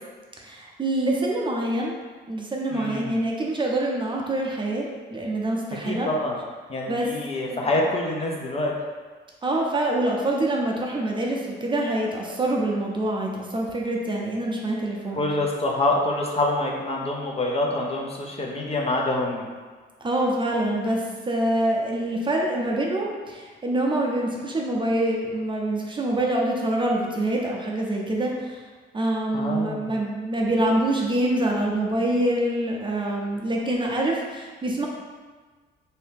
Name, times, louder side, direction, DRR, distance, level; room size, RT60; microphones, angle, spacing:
voice 1, 0.4-2.0 2.3-6.1 6.9-7.1 7.5-7.7 9.4-15.2 20.0-28.6 28.9-34.9, right 1 dB, 25° right, -2 dB, 0.5 m, -25 dB
voice 2, 2.7-3.2 5.8-6.4 6.7-8.7 15.1-19.5 29.3-29.9, left 2 dB, 30° left, -1 dB, 0.5 m, -26 dB
2.7 x 2.7 x 3.4 m, 1.4 s
cardioid pair, 90°, 20 cm